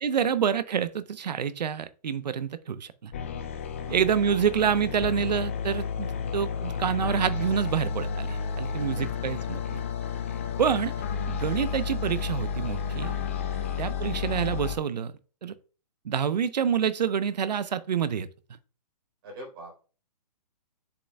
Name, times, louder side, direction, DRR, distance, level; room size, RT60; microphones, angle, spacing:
voice 1, 0.0-3.1 3.9-9.8 10.6-10.9 11.3-13.2 13.8-15.1 15.4-15.5 16.0-18.3, right 8 dB, 85° right, 0.8 m, -27 dB
sound 1, 3.1-14.8, left 6 dB, 20° left, 0.4 m, -31 dB
voice 2, 3.6-4.0 6.0-6.3 8.8-9.3 13.5-13.8 19.2-19.8, right 1 dB, 35° right, 3.8 m, -46 dB
7.8 x 6.9 x 2.3 m
hypercardioid pair, 170°, 21 cm